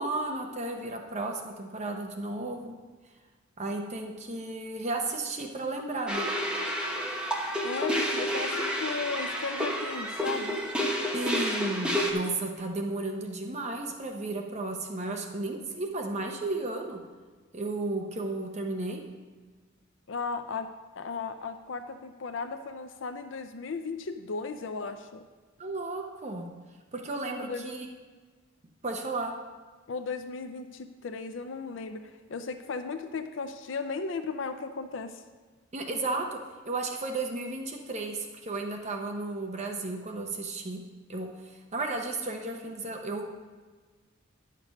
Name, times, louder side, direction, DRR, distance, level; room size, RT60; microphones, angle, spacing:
voice 1, 0.0-2.7 3.6-6.3 11.1-17.0 17.5-19.0 25.6-26.5 26.9-27.9 28.8-29.3 35.7-36.4 36.6-40.8 41.1-43.3, right 2 dB, 35° right, 3 dB, 0.8 m, -33 dB
sound 1, 6.1-12.1, equal, 5° right, 1.0 m, -30 dB
voice 2, 7.6-10.7 20.1-20.7 21.0-25.2 27.4-27.7 29.9-35.2, left 4 dB, 65° left, 8 dB, 0.5 m, -36 dB
10.5 x 6.6 x 5.2 m, 1.4 s
head